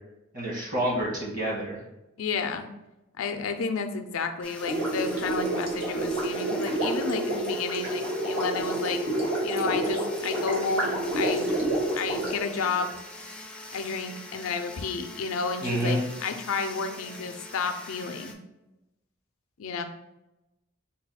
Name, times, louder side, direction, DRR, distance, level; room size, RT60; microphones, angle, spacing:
voice 1, 0.3-1.8 15.6-16.0, right 1 dB, 40° right, -4 dB, 1.4 m, -28 dB
voice 2, 2.2-2.7 3.2-9.0 9.4-11.5 11.9-12.9 13.7-18.3 19.6-19.8, left 5 dB, 90° left, 7 dB, 0.4 m, -31 dB
sound 1, 4.4-18.3, left 2 dB, 5° left, 0.3 m, -44 dB
Gurgling, 4.6-13.0, right 1 dB, 85° right, 1.1 m, -29 dB
4.0 x 2.2 x 4.2 m, 0.94 s
head